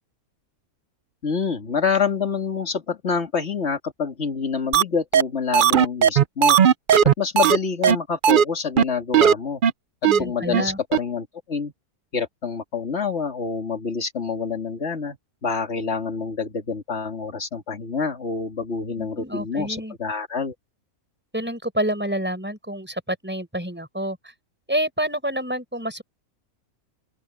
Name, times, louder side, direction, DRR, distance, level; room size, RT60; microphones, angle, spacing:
voice 1, 1.2-6.6 7.2-9.6 10.2-11.7 12.1-15.2 15.4-20.5, left 5 dB, 45° left, 2.7 m, -27 dB
sound 1, 4.7-4.8 5.1-5.2 5.5-7.6 7.8-7.9 8.2-8.4 8.8-8.9 9.1-9.3 9.6-9.7 10.0-10.2 10.5-10.6 10.9-11.0, right 8 dB, 90° right, 0.4 m, -15 dB
voice 2, 10.1-10.8 19.0-20.0 21.3-24.3 24.7-26.0, equal, 5° right, 5.3 m, -28 dB
open air
omnidirectional pair, 1.6 m